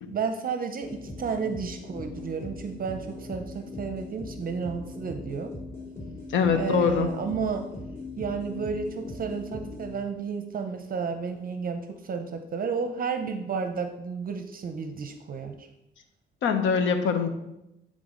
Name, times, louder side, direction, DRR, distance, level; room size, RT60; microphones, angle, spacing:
voice 1, 0.1-5.5 6.5-7.6 8.2-15.7, right 5 dB, 45° right, 7 dB, 0.6 m, -32 dB
sound 1, 0.8-10.3, left 2 dB, 15° left, 2.4 m, -40 dB
voice 2, 6.3-7.1 16.4-17.3, left 6 dB, 75° left, 7 dB, 0.9 m, -23 dB
9.0 x 3.7 x 3.8 m, 0.87 s
cardioid pair, 90°, 20 cm